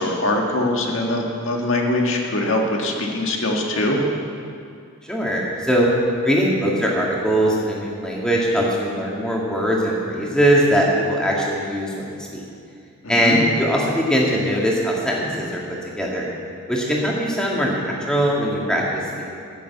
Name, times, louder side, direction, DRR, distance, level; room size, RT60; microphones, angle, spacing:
voice 1, 0.0-4.0 13.0-13.4, left 1 dB, 65° left, 0 dB, 1.8 m, -22 dB
voice 2, 5.0-5.9 6.2-12.4 13.1-15.6 16.0-16.3 16.7-19.2, equal, 5° left, -3 dB, 1.8 m, -21 dB
13.0 x 6.8 x 8.3 m, 2.4 s
head